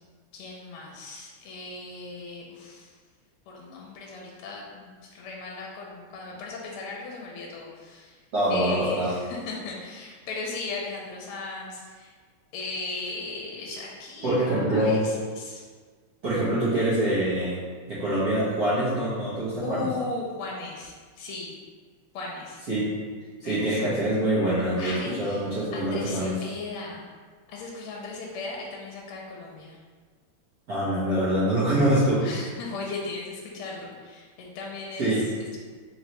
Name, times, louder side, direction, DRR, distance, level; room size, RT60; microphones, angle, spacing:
voice 1, 0.3-2.9 3.5-8.2 8.5-12.1 12.5-15.7 19.6-21.5 22.1-22.6 23.4-23.9 24.8-25.5 25.7-27.1 27.5-29.8 32.2-35.6, left 3 dB, 85° left, -2 dB, 1.5 m, -37 dB
voice 2, 8.3-9.1 14.2-15.0 16.2-17.6 17.9-19.9 22.7-22.9 23.4-26.3 30.7-32.2 35.0-35.2, right 1 dB, 55° right, -11 dB, 1.2 m, -24 dB
3.9 x 3.2 x 2.9 m, 1.5 s
omnidirectional pair, 2.4 m